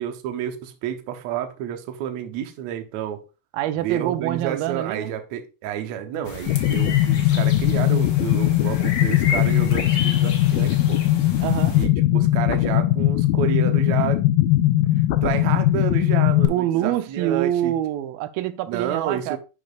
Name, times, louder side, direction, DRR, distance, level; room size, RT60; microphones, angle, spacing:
voice 1, 0.0-3.2 3.8-11.0 11.7-14.2 15.2-17.7 18.7-19.4, right 10 dB, 70° right, 1.8 m, -30 dB
voice 2, 3.5-5.1 11.4-11.8 16.5-19.4, right 12 dB, 90° right, 2.4 m, -25 dB
sound 1, 6.2-11.9, left 4 dB, 65° left, 1.3 m, -32 dB
sound 2, 6.5-16.5, left 14 dB, 85° left, 2.4 m, -20 dB
10.5 x 5.2 x 2.4 m
omnidirectional pair, 4.1 m